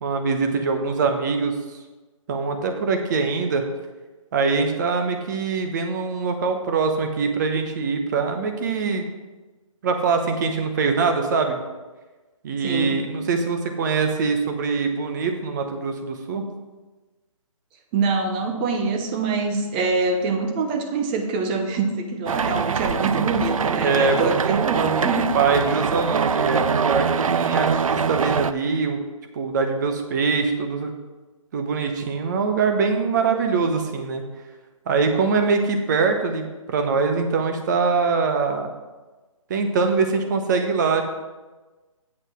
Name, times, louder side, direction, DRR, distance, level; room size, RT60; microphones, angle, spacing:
voice 1, 0.0-1.6 2.3-3.6 4.3-9.1 9.8-11.6 12.4-16.4 23.8-24.2 25.3-29.0 29.3-30.9 31.5-34.2 34.9-38.7 39.5-41.0, right 4 dB, 35° right, 5 dB, 1.0 m, -23 dB
voice 2, 12.6-13.0 17.9-25.3, right 4 dB, 15° right, 5 dB, 0.6 m, -24 dB
sound 1, 22.3-28.5, right 6 dB, 80° right, 0.5 m, -23 dB
8.4 x 5.3 x 6.1 m, 1.2 s
hypercardioid pair, 155°, 17 cm